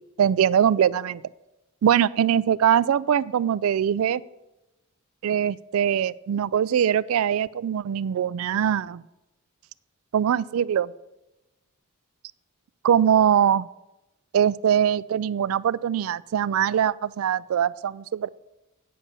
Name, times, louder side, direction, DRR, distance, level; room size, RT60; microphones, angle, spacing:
voice 1, 0.2-1.2 1.8-4.2 5.2-9.0 10.1-10.9 12.8-13.7 14.3-18.3, right 9 dB, 75° right, 19 dB, 0.3 m, -22 dB
8.6 x 7.1 x 6.7 m, 0.98 s
head